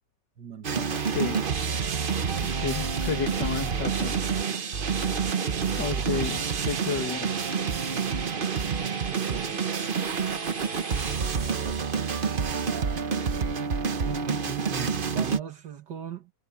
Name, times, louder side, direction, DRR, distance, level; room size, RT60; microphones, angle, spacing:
voice 1, 0.4-1.1 5.9-6.0 8.9-9.6 11.4-11.9 14.0-16.3, right 8 dB, 75° right, 2.1 m, -39 dB
sound 1, 0.6-15.4, right 6 dB, 40° right, 0.9 m, -28 dB
voice 2, 1.1-1.5 2.4-4.2 5.8-7.5, left 6 dB, 80° left, 2.4 m, -32 dB
sound 2, 7.3-12.1, left 3 dB, 35° left, 3.6 m, -47 dB
omnidirectional pair, 1.9 m